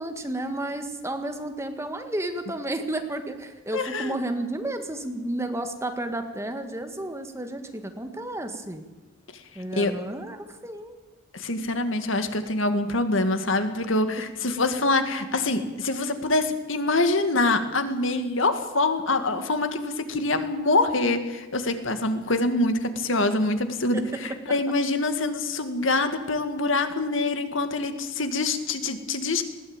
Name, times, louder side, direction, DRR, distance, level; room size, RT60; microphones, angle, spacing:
voice 1, 0.0-8.9 9.6-10.9 14.2-14.3 23.9-24.0, right 1 dB, 15° right, 6 dB, 1.8 m, -32 dB
voice 2, 3.7-4.1 9.8-9.9 11.3-29.4, left 2 dB, 75° left, 8 dB, 2.1 m, -25 dB
20.5 x 16.5 x 9.0 m, 1.2 s
head